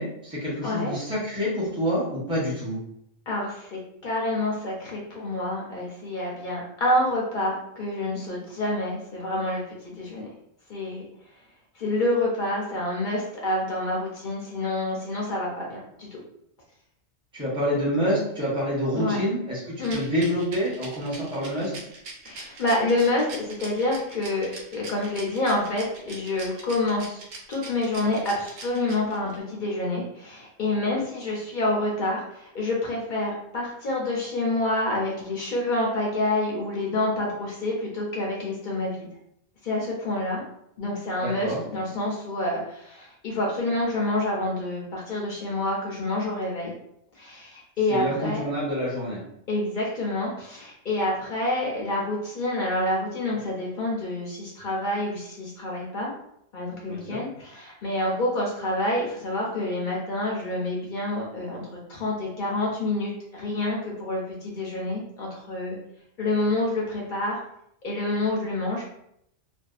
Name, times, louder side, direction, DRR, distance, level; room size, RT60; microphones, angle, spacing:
voice 1, 0.0-2.8 17.3-21.7 41.2-41.6 47.9-49.2 56.9-57.2, equal, 5° right, -7 dB, 0.6 m, -27 dB
voice 2, 0.6-0.9 3.3-10.3 10.7-11.0 11.7-16.2 18.9-19.2 19.8-20.0 22.3-27.2 27.5-39.1 39.6-40.4 40.8-46.7 47.1-48.4 49.5-56.1 56.5-65.8 66.2-67.4 67.8-68.8, left 1 dB, 55° left, -3 dB, 0.6 m, -28 dB
Rattle, 19.8-29.4, right 3 dB, 80° right, 1.0 m, -41 dB
2.5 x 2.3 x 2.3 m, 0.76 s
omnidirectional pair, 1.2 m